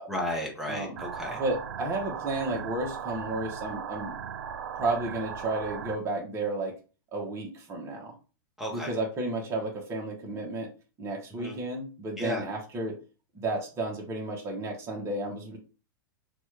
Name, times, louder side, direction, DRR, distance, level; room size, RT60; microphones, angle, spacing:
voice 1, 0.1-1.4 8.6-8.9 11.4-11.6 12.2-12.4, left 1 dB, ahead, -1 dB, 0.9 m, -33 dB
voice 2, 0.7-1.0 1.4-4.1 4.8-6.7 7.1-8.1 8.7-10.7 11.0-13.0 13.3-15.6, right 2 dB, 25° right, 0 dB, 1.0 m, -32 dB
sound 1, 1.0-6.0, right 7 dB, 75° right, 0.4 m, -38 dB
3.0 x 2.3 x 3.1 m, 0.34 s
hypercardioid pair, 120°, 11 cm